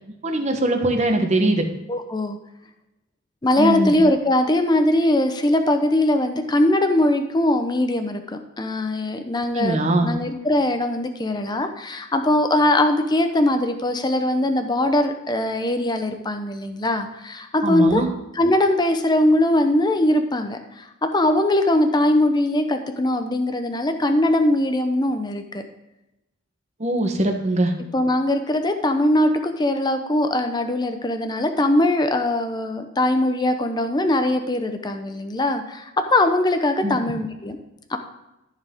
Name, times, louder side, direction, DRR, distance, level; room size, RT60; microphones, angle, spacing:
voice 1, 0.2-1.7 3.6-3.9 9.5-10.1 17.6-18.1 26.8-27.7 36.8-37.0, right 1 dB, 35° right, 4 dB, 1.1 m, -21 dB
voice 2, 1.9-2.4 3.4-18.0 18.3-25.6 27.9-37.6 37.9-38.0, left 1 dB, 20° left, 7 dB, 0.7 m, -21 dB
14.0 x 4.7 x 3.6 m, 0.94 s
head